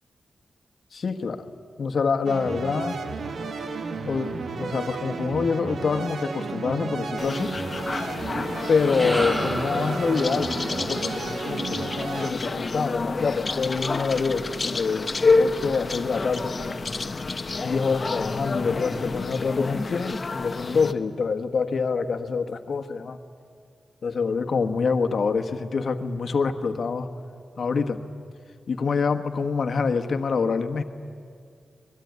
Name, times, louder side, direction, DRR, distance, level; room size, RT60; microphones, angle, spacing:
voice 1, 0.9-3.0 4.1-7.5 8.7-10.5 10.9-16.8 17.6-23.2 24.0-27.1 27.6-28.0 28.7-30.8, left 5 dB, 65° left, 6 dB, 1.4 m, -26 dB
sound 1, 2.3-12.3, right 4 dB, 65° right, 1.5 m, -33 dB
sound 2, 7.2-20.9, left 3 dB, 40° left, 1.1 m, -29 dB
sound 3, 8.5-12.9, equal, 10° right, 3.2 m, -33 dB
24.0 x 21.5 x 9.6 m, 2.2 s
cardioid pair, 85°, 0 cm